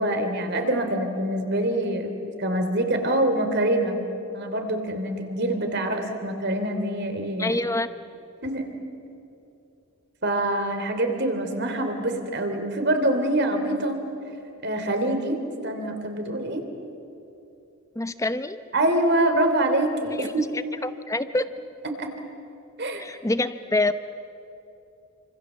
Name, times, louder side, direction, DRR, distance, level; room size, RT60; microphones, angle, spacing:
voice 1, 0.0-4.0 4.3-7.6 8.4-8.7 10.2-14.0 14.6-16.6 18.7-20.4 22.0-22.1 22.8-23.0, right 1 dB, 50° right, 6 dB, 3.2 m, -25 dB
voice 2, 7.4-7.9 17.9-18.6 20.2-20.3 20.8-21.5 23.0-23.9, left 2 dB, 15° left, 11 dB, 0.8 m, -26 dB
28.5 x 26.5 x 7.4 m, 2.8 s
head